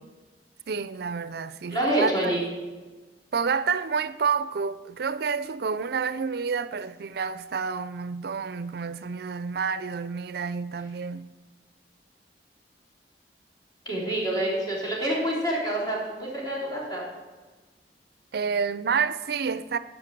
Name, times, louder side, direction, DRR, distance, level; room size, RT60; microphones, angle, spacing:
voice 1, 0.7-2.4 3.3-11.3 18.3-19.8, right 5 dB, 60° right, 0.4 m, -29 dB
voice 2, 1.7-2.4 13.9-17.0, right 1 dB, 25° left, 3.5 m, -27 dB
11.0 x 5.2 x 7.6 m
head